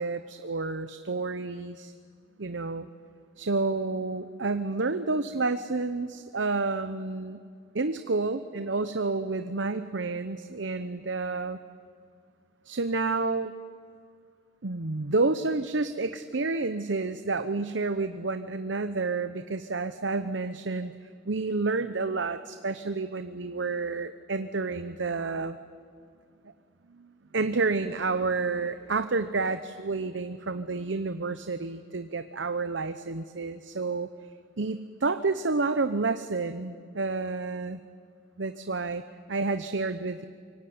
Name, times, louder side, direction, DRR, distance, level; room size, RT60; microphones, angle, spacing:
voice 1, 0.0-1.9 2.4-2.9 3.4-7.4 7.7-11.6 12.6-13.5 14.6-20.9 21.3-25.6 26.9-27.1 27.3-34.1 34.6-37.8 38.4-39.0 39.3-40.2, right 3 dB, 75° right, 10 dB, 0.9 m, -30 dB
25.0 x 23.5 x 9.4 m, 2.3 s
head